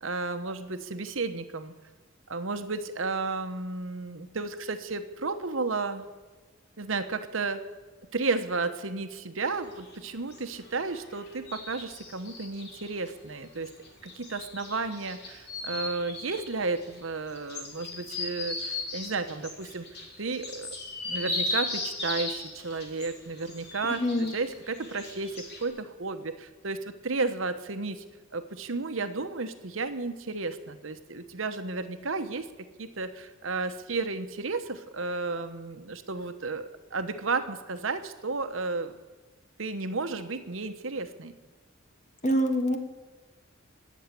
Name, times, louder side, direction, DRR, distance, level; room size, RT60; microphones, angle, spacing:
voice 1, 0.0-1.7 2.3-6.1 6.8-7.6 8.1-13.7 14.0-19.9 20.2-20.7 21.0-28.0 28.3-38.9 39.6-41.3, right 3 dB, 70° right, 9 dB, 1.1 m, -33 dB
sound 1, 9.5-25.6, left 2 dB, 55° left, 3.6 m, -37 dB
voice 2, 23.9-24.3 42.2-42.8, equal, 35° left, 5 dB, 1.8 m, -25 dB
20.0 x 7.3 x 9.8 m, 1.3 s
head